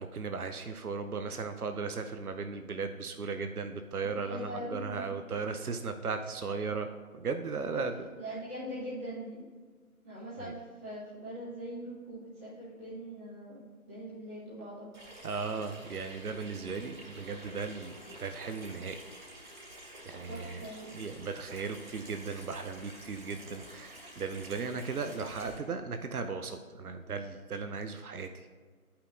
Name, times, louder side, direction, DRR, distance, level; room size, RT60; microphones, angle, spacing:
voice 1, 0.0-8.0 10.4-10.5 15.2-19.0 20.1-20.6 20.9-28.5, right 4 dB, 80° right, 7 dB, 0.7 m, -37 dB
voice 2, 4.0-5.0 7.7-7.8 8.1-9.4 10.0-14.9 20.3-21.0, equal, 10° right, -12 dB, 1.4 m, -42 dB
Water tap faucet / Sink (filling or washing), 14.9-25.6, equal, 30° right, 1.8 m, -50 dB
13.0 x 5.7 x 2.5 m, 1.5 s
figure-of-eight pair, 150°, 44 cm